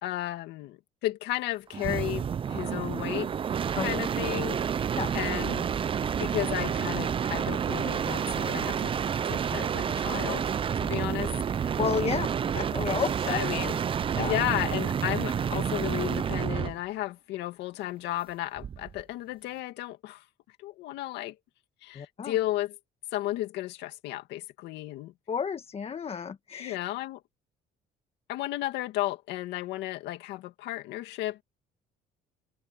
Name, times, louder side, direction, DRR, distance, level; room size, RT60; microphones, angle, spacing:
voice 1, 0.0-3.3 3.8-4.8 5.1-5.7 6.2-8.9 9.2-10.4 10.8-11.8 13.3-13.8 14.2-20.2 20.6-21.4 21.8-22.8 23.1-25.1 26.6-27.2 28.3-31.4, left 15 dB, 90° left, 2.1 m, -33 dB
sound 1, 1.7-16.8 18.6-19.0, right 7 dB, 30° right, 0.5 m, -29 dB
voice 2, 11.8-12.3 12.5-13.4 14.2-14.3 21.9-22.4 25.3-26.8, left 6 dB, 35° left, 1.5 m, -31 dB
cardioid pair, 110°, 17 cm